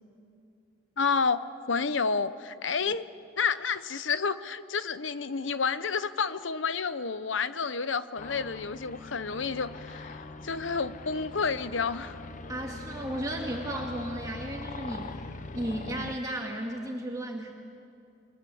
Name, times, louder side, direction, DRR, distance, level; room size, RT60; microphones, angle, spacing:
voice 1, 1.0-3.0 3.4-12.1, left 5 dB, 75° left, 13 dB, 0.9 m, -30 dB
sound 1, 8.2-16.2, left 3 dB, 40° left, 0.9 m, -42 dB
voice 2, 12.5-15.2 15.5-17.5, right 1 dB, 20° right, 0 dB, 2.2 m, -34 dB
28.5 x 24.0 x 7.9 m, 2.6 s
head